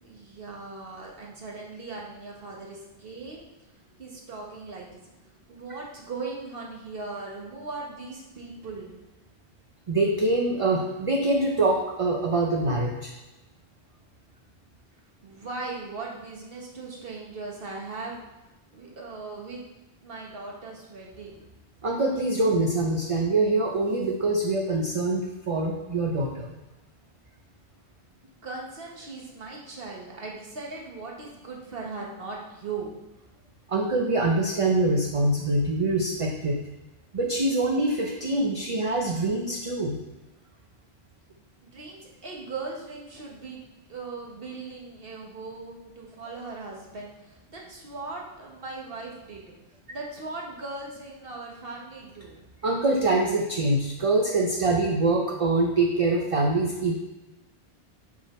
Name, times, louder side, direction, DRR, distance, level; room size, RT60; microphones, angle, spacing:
voice 1, 0.0-3.5 3.7-5.0 5.3-9.0 14.9-18.2 18.7-19.6 20.0-21.5 28.4-32.9 41.6-43.6 43.9-49.5 49.9-52.4, right 3 dB, 65° right, -2 dB, 1.6 m, -39 dB
voice 2, 9.9-13.1 21.8-26.5 33.7-36.6 37.1-40.0 52.6-56.9, right 2 dB, 35° right, 0 dB, 0.7 m, -24 dB
6.1 x 5.9 x 4.3 m, 1.0 s
omnidirectional pair, 1.0 m